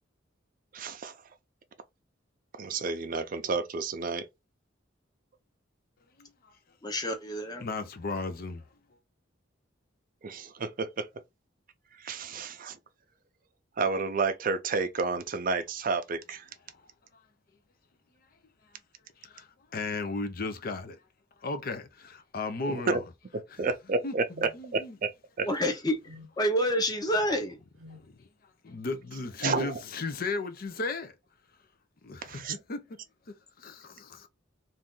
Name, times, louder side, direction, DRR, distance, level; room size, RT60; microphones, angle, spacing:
voice 1, 0.7-1.1 2.6-4.2 10.2-11.1 12.0-12.8 13.8-16.4 22.7-23.0 23.6-25.5 29.4-29.7 32.2-32.6, right 4 dB, 45° right, 0.5 m, -30 dB
voice 2, 6.8-7.7 25.4-27.6, equal, 20° left, 0.8 m, -28 dB
voice 3, 7.6-8.6 16.7-16.8 19.2-21.0 21.4-23.0 24.0-24.1 24.5-25.0 27.9-28.1 28.6-31.1 32.0-32.8 33.6-34.3, left 3 dB, 50° left, 0.6 m, -35 dB
sound 1, 24.3-24.6 26.0-26.4 27.8-28.1 29.4-29.7, left 2 dB, 85° right, 0.7 m, -49 dB
2.7 x 2.5 x 3.6 m
head